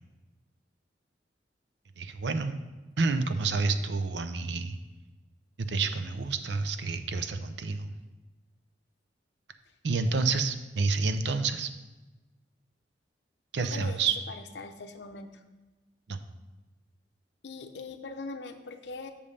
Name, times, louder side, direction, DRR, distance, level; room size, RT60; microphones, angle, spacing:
voice 1, 2.0-2.6 3.0-4.8 5.6-7.9 9.8-11.7 13.5-14.1 16.1-16.2, right 4 dB, 70° right, 9 dB, 0.6 m, -29 dB
voice 2, 13.6-15.4 17.4-19.1, left 3 dB, 70° left, 8 dB, 0.6 m, -41 dB
6.9 x 5.2 x 5.5 m, 1.1 s
head